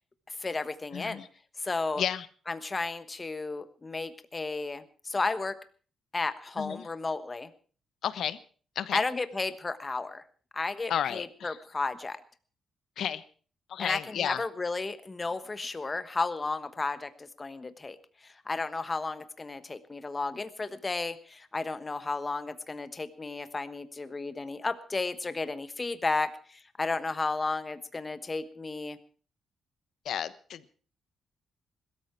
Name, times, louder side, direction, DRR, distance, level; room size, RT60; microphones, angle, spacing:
voice 1, 0.3-1.2 1.6-2.0 2.5-5.5 6.1-7.5 8.9-10.2 10.5-12.2 13.8-18.0 18.2-29.0, left 3 dB, 20° left, 12 dB, 1.2 m, -33 dB
voice 2, 0.9-1.3 2.0-2.3 6.6-6.9 8.0-8.4 8.7-9.0 10.9-11.6 13.0-13.2 13.7-14.4 30.0-30.8, left 9 dB, 70° left, 15 dB, 1.0 m, -32 dB
21.0 x 13.5 x 4.6 m, 0.40 s
cardioid pair, 145°, 0 cm